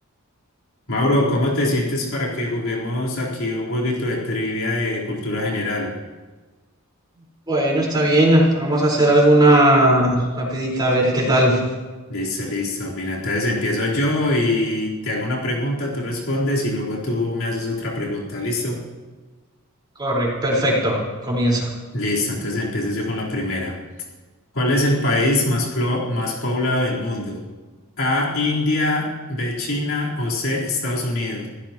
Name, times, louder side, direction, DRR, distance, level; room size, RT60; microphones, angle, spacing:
voice 1, 0.9-6.0 12.1-18.8 21.9-23.8 24.5-27.4 28.0-31.5, left 1 dB, 65° left, -5 dB, 4.2 m, -23 dB
voice 2, 7.5-11.6 20.0-21.0 21.2-21.7, right 1 dB, 20° right, -3 dB, 4.8 m, -17 dB
27.0 x 16.0 x 3.1 m, 1.3 s
head